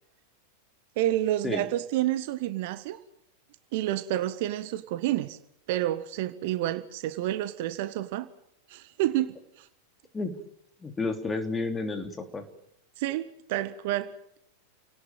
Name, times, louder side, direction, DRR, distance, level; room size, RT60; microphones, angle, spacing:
voice 1, 1.0-3.0 3.7-5.4 5.7-8.3 8.7-9.7 13.0-14.1, right 13 dB, 50° right, 12 dB, 1.5 m, -29 dB
voice 2, 10.8-12.4, left 3 dB, 15° left, 7 dB, 3.3 m, -31 dB
29.5 x 18.5 x 7.4 m, 0.75 s
figure-of-eight pair, 90°, 0 cm